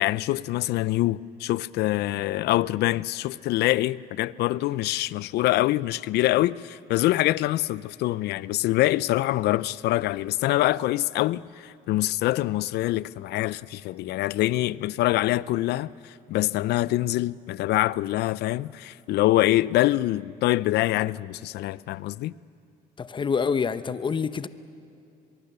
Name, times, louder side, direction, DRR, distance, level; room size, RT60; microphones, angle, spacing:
voice 1, 0.0-22.3, left 16 dB, 75° left, 0.5 m, -25 dB
voice 2, 23.0-24.5, left 6 dB, 30° left, 0.8 m, -26 dB
24.5 x 22.5 x 6.8 m
cardioid pair, 110°, 17 cm